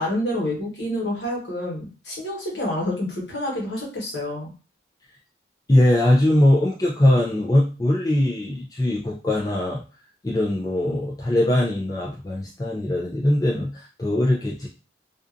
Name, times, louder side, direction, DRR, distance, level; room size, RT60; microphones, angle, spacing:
voice 1, 0.0-4.5, left 1 dB, 60° left, -2 dB, 1.1 m, -28 dB
voice 2, 5.7-9.8 10.2-14.7, left 1 dB, 20° left, -4 dB, 0.3 m, -21 dB
2.5 x 2.3 x 2.5 m, 0.34 s
head